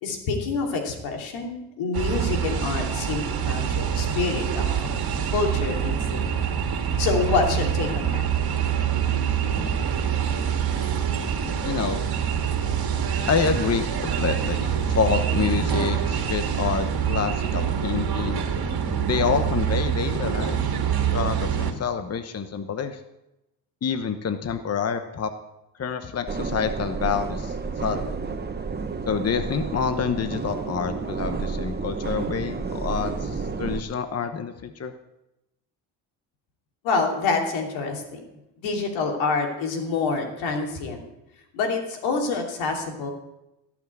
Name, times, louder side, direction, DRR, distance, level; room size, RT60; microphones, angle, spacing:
voice 1, 0.0-4.7 5.3-6.5 7.0-8.2 36.8-38.2 38.6-41.1 41.5-43.1, left 4 dB, 80° left, 2 dB, 3.0 m, -27 dB
sound 1, 1.9-21.7, right 8 dB, 50° right, 2.0 m, -25 dB
voice 2, 11.6-12.0 13.3-18.4 19.1-20.6 21.0-23.0 23.8-25.3 25.8-28.1 29.1-34.9, left 6 dB, 35° left, 9 dB, 1.0 m, -27 dB
sound 2, 26.3-33.8, right 4 dB, 20° right, 1.3 m, -31 dB
16.5 x 6.1 x 8.1 m, 0.92 s
supercardioid pair, 75°, 46 cm